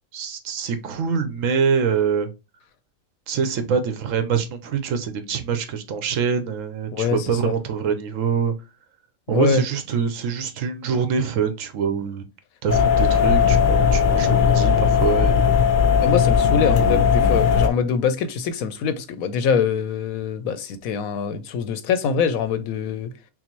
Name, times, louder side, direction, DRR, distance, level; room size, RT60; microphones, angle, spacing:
voice 1, 0.1-2.3 3.3-8.5 9.3-12.2 12.6-15.5 16.8-17.0, right 6 dB, 75° right, 1.0 m, -24 dB
voice 2, 6.9-7.5 9.3-9.6 16.0-23.1, left 6 dB, 90° left, 1.1 m, -24 dB
sound 1, 12.7-17.7, left 7 dB, 60° left, 0.5 m, -17 dB
5.8 x 2.0 x 3.0 m
omnidirectional pair, 1.4 m